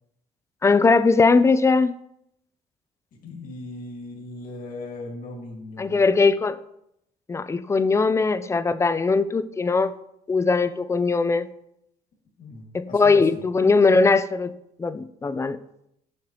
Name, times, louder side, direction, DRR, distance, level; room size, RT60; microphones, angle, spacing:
voice 1, 0.6-1.9 5.8-6.6 7.3-9.9 10.3-11.5 12.7-14.5 14.8-15.6, left 4 dB, 15° left, 13 dB, 0.3 m, -20 dB
voice 2, 3.2-6.0 12.4-13.4, left 2 dB, 55° left, -3 dB, 1.9 m, -38 dB
7.4 x 6.5 x 2.9 m, 0.78 s
cardioid pair, 110°, 17 cm